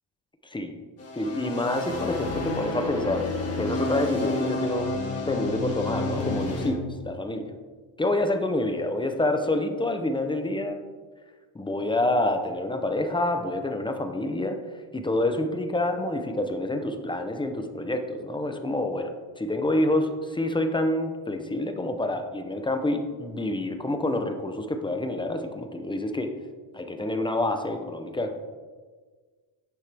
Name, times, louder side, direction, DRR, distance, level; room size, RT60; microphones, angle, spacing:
voice 1, 0.4-0.8 1.2-3.3 3.6-4.9 5.3-7.5 8.0-10.8 11.5-14.6 14.9-26.3 26.7-28.4, left 1 dB, 10° left, 6 dB, 0.6 m, -27 dB
sound 1, 1.0-6.7, left 2 dB, 30° left, 1.7 m, -30 dB
9.8 x 9.6 x 3.4 m, 1.5 s
cardioid pair, 160°, 50 cm